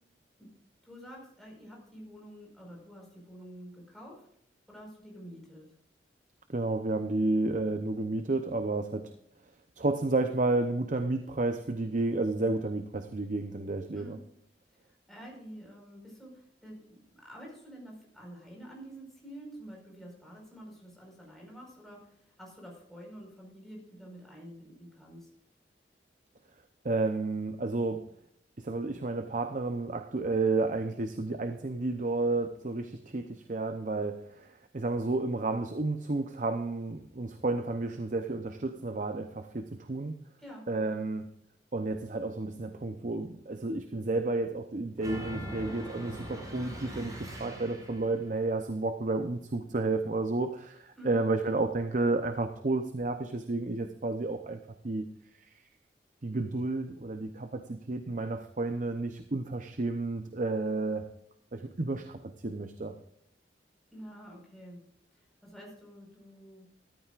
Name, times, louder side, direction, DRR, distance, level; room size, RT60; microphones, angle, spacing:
voice 1, 0.8-4.3 4.7-5.7 13.9-14.2 14.9-25.3 40.4-40.7 51.0-51.2 63.9-64.8 65.2-66.7, equal, ahead, -2 dB, 4.8 m, -48 dB
voice 2, 6.5-9.1 9.8-14.2 26.8-28.1 28.6-40.2 40.7-41.3 41.7-55.1 55.4-55.5 56.2-61.1 61.5-63.0, right 2 dB, 45° right, 8 dB, 0.7 m, -31 dB
sound 1, 45.0-48.2, equal, 20° right, 4.7 m, -41 dB
13.5 x 13.5 x 2.5 m, 0.71 s
head